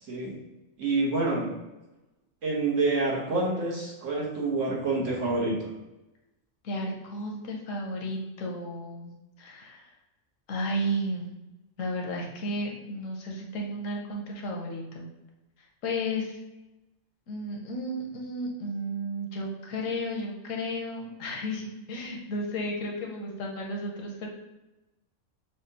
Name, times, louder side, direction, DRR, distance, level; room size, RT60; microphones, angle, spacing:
voice 1, 0.8-1.5 2.4-5.7, right 3 dB, 75° right, -4 dB, 1.5 m, -27 dB
voice 2, 6.6-9.1 9.4-9.9 10.5-11.3 11.8-15.1 15.8-16.4 17.3-24.3, equal, 85° left, 0 dB, 1.2 m, -33 dB
6.1 x 2.3 x 2.8 m, 1.0 s
omnidirectional pair, 1.3 m